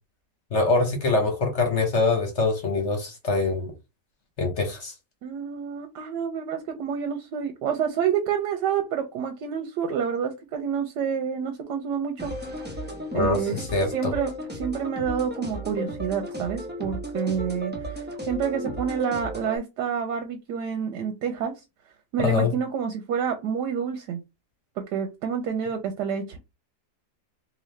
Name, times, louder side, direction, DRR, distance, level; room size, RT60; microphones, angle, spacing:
voice 1, 0.5-3.7 4.4-4.9 13.1-14.1 22.2-22.5, left 3 dB, 50° left, 1.2 m, -24 dB
voice 2, 5.2-12.3 13.1-13.6 13.9-21.6 22.1-24.2 24.9-26.4, right 7 dB, 85° right, 1.3 m, -28 dB
sound 1, 12.2-19.6, equal, 10° right, 0.5 m, -34 dB
3.8 x 2.8 x 3.2 m
omnidirectional pair, 1.8 m